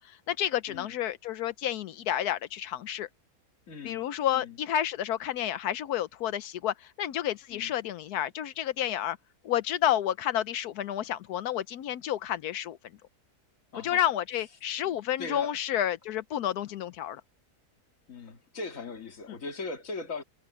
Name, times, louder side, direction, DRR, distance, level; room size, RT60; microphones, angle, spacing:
voice 1, 0.0-3.1 3.8-9.2 9.4-12.8 13.8-17.2, left 11 dB, 75° left, 1.2 m, -30 dB
voice 2, 3.7-4.1 4.3-4.6 7.5-7.7 13.7-14.0 14.8-15.5 18.1-20.2, left 3 dB, 55° left, 2.4 m, -39 dB
omnidirectional pair, 1.7 m